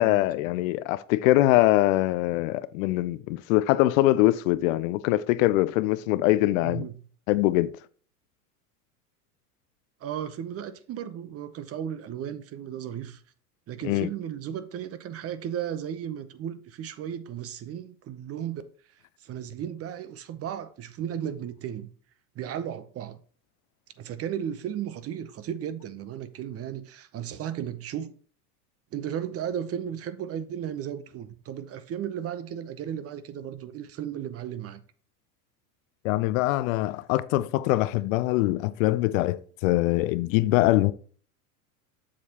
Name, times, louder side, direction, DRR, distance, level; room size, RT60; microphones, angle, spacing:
voice 1, 0.0-6.9 7.3-7.8 13.8-14.1 36.0-40.9, left 17 dB, 60° left, 0.5 m, -23 dB
voice 2, 6.6-6.9 10.0-13.2 13.7-18.6 19.2-21.9 22.4-23.2 24.0-28.1 28.9-34.8 39.1-39.2, right 9 dB, 30° right, 0.7 m, -35 dB
7.3 x 6.6 x 2.9 m
hypercardioid pair, 95°, 46 cm